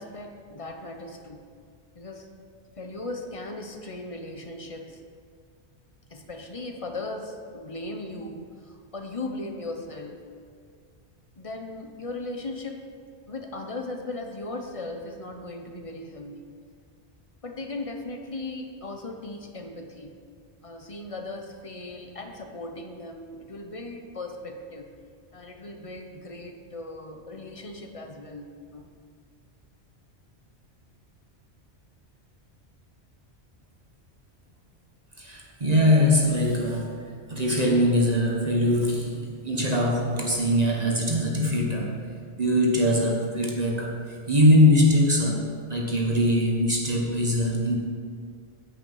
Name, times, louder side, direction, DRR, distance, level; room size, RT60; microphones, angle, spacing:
voice 1, 0.0-1.5 1.9-2.3 2.8-5.0 6.1-10.3 11.4-12.9 13.3-16.5 17.4-20.2 20.6-24.9 25.3-28.9, left 2 dB, 35° left, 4 dB, 0.9 m, -37 dB
voice 2, 35.2-36.9 37.3-41.9 42.4-43.9 44.3-45.4 45.7-47.8, left 1 dB, 35° right, -2 dB, 1.3 m, -22 dB
9.2 x 8.1 x 5.5 m, 2.1 s
omnidirectional pair, 1.1 m